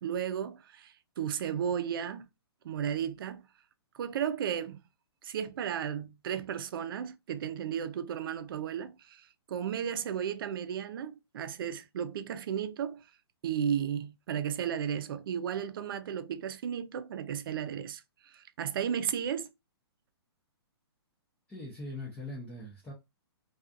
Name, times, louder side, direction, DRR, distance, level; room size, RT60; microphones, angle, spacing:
voice 1, 0.0-2.3 2.6-3.4 3.9-4.8 5.2-13.1 13.4-19.5, right 8 dB, 55° right, 0.4 m, -34 dB
voice 2, 21.5-22.9, left 1 dB, 10° left, 0.5 m, -41 dB
2.4 x 2.4 x 2.4 m
hypercardioid pair, 150°, 14 cm